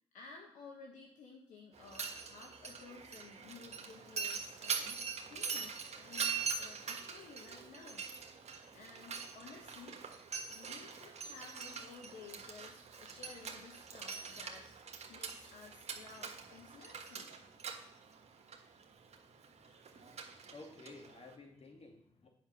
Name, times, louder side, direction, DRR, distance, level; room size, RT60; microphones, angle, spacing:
voice 1, 0.1-8.1 8.7-10.1 10.5-14.7 15.1-17.4, left 4 dB, 70° left, 0 dB, 1.4 m, -54 dB
Mechanisms, 1.7-21.3, right 5 dB, 55° right, 1.4 m, -43 dB
voice 2, 19.6-22.3, left 3 dB, 50° left, 1 dB, 2.5 m, -55 dB
8.6 x 5.8 x 6.1 m, 0.65 s
hypercardioid pair, 45°, 14 cm